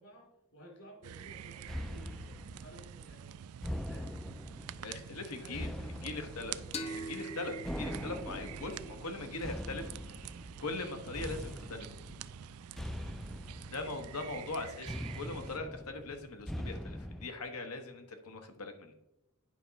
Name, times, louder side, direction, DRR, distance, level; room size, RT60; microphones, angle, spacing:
voice 1, 0.0-3.4 3.7-4.1 5.3-6.7 7.9-8.0 13.7-13.9, right 1 dB, 60° left, 0 dB, 2.8 m, -55 dB
sound 1, 1.0-15.6, right 10 dB, 75° right, 0.4 m, -48 dB
sound 2, 1.7-17.3, equal, ahead, 0.3 m, -43 dB
voice 2, 4.8-5.7 6.0-6.5 6.9-10.3 10.6-11.9 13.7-18.9, left 3 dB, 80° left, 6 dB, 1.2 m, -41 dB
sound 3, 6.7-10.1, equal, 30° left, 0.7 m, -44 dB
9.2 x 5.8 x 4.0 m, 0.89 s
head